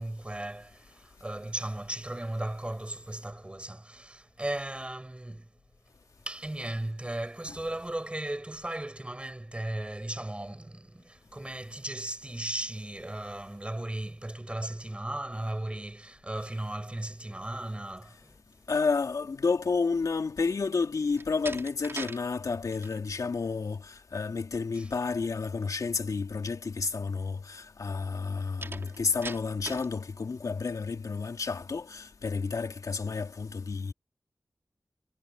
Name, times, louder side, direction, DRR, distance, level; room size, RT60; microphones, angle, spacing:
voice 1, 0.0-5.5 6.2-18.4 24.7-24.9, right 1 dB, 20° right, 4.9 m, -36 dB
voice 2, 18.7-33.9, left 4 dB, 80° left, 3.1 m, -31 dB
Slam, 21.1-22.2 22.5-23.0 28.6-29.9, right 3 dB, 45° right, 2.8 m, -40 dB
wide cardioid pair, 90°, 6 cm